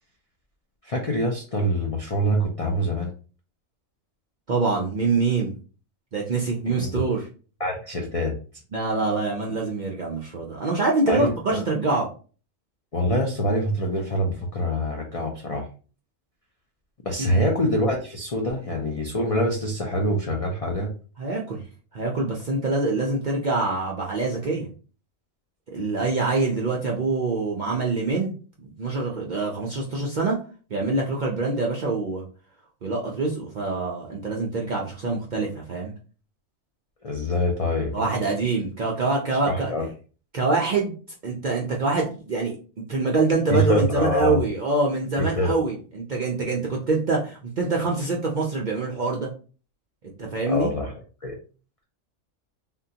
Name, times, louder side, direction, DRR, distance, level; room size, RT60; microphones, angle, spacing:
voice 1, 0.8-3.1 6.7-7.0 7.6-8.3 11.1-11.6 12.9-15.7 17.1-20.9 37.0-38.2 39.3-39.9 43.5-44.4 45.2-45.6 50.5-50.9 51.2-51.4, equal, 65° left, 0 dB, 0.3 m, -25 dB
voice 2, 4.5-5.5 6.1-7.3 8.7-12.1 17.2-17.4 21.2-21.6 21.9-24.7 25.7-28.3 28.6-30.4 30.7-32.2 32.8-35.9 37.9-39.7 40.3-40.9 41.2-42.5 42.9-49.3 50.2-50.7, right 3 dB, 60° right, -2 dB, 0.5 m, -25 dB
3.6 x 2.2 x 2.7 m, 0.37 s
omnidirectional pair, 1.4 m